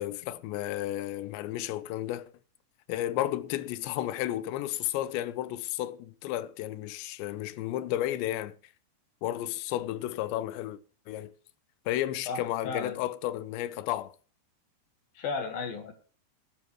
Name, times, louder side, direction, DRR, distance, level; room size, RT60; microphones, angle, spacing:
voice 1, 0.0-2.3 2.9-8.6 9.2-10.8 11.1-11.3 11.9-14.2, left 13 dB, 85° left, 3.1 m, -32 dB
voice 2, 12.3-13.0 15.1-15.9, left 4 dB, 65° left, 3.0 m, -34 dB
21.0 x 10.5 x 3.1 m
omnidirectional pair, 5.0 m